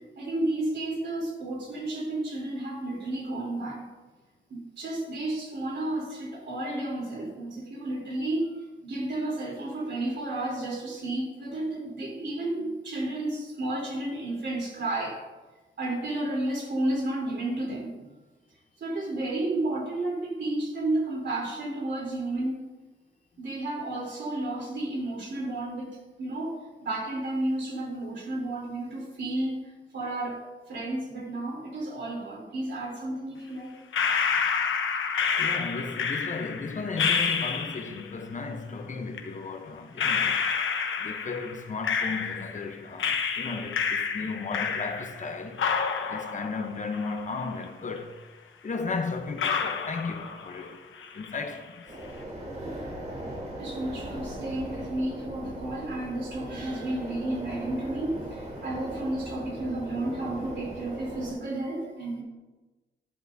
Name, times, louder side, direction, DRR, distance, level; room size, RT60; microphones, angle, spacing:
voice 1, 0.2-3.9 4.5-15.2 15.8-18.1 18.8-22.7 23.4-33.7 53.6-62.2, right 2 dB, 65° right, 3.3 m, -32 dB
sound 1, 33.9-38.1 39.1-39.2 40.0-42.7 43.0-45.3 45.6-47.6 48.0-48.1 48.7-48.8 49.4-50.7 51.0-51.5, left 6 dB, 90° left, 0.9 m, -29 dB
voice 2, 35.4-40.4 41.0-45.6 46.1-48.2 48.6-50.8 51.1-51.8, left 4 dB, 40° left, 0.8 m, -35 dB
sound 2, 51.9-61.3, right 1 dB, 35° right, 3.2 m, -39 dB
11.5 x 11.5 x 2.7 m
wide cardioid pair, 160°, 20 cm